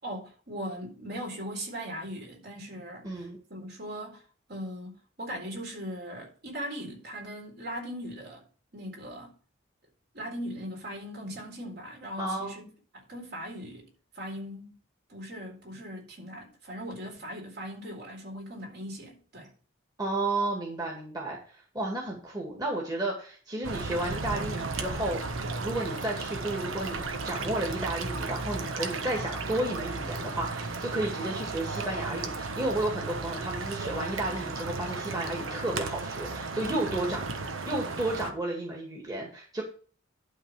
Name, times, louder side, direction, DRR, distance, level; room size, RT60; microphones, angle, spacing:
voice 1, 0.0-8.5 8.7-9.3 10.1-12.6 12.9-13.9 14.1-14.7 15.1-19.5, equal, 55° right, 4.0 m, -39 dB
voice 2, 3.0-3.4 12.2-12.5 20.0-37.3 37.6-39.6, right 1 dB, 20° right, 2.1 m, -32 dB
sound 1, 23.6-38.3, right 3 dB, 85° right, 1.2 m, -34 dB
11.5 x 3.9 x 7.1 m
head